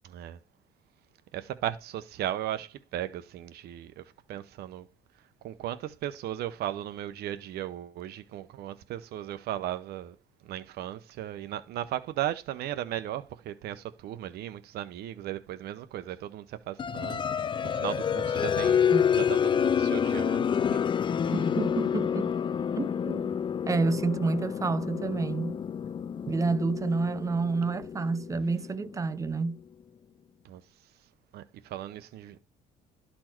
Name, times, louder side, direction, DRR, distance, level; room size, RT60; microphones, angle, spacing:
voice 1, 0.0-0.4 1.3-4.0 4.3-4.9 5.4-10.2 10.4-18.9 19.1-20.8 30.4-30.6 31.3-32.4, right 12 dB, 70° right, 0.8 m, -36 dB
sound 1, 16.8-29.3, left 7 dB, 30° left, 0.4 m, -28 dB
voice 2, 21.3-22.3 22.8-23.4 23.7-25.6 26.3-29.6, right 4 dB, 20° right, 0.5 m, -29 dB
11.5 x 4.4 x 4.4 m
cardioid pair, 110°, 17 cm